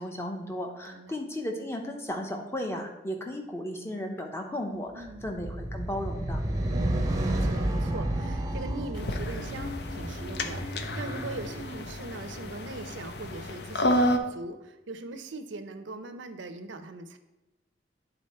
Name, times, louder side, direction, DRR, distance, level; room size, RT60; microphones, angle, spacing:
voice 1, 0.0-6.5, left 1 dB, 15° left, 3 dB, 0.8 m, -35 dB
voice 2, 0.9-1.2 5.0-5.3 6.7-17.2, right 2 dB, 80° right, 9 dB, 0.6 m, -41 dB
sound 1, 5.1-11.6, right 1 dB, 20° right, 0.7 m, -31 dB
sound 2, 9.0-14.2, left 1 dB, 60° left, 0.6 m, -31 dB
9.0 x 4.0 x 4.3 m, 1.0 s
head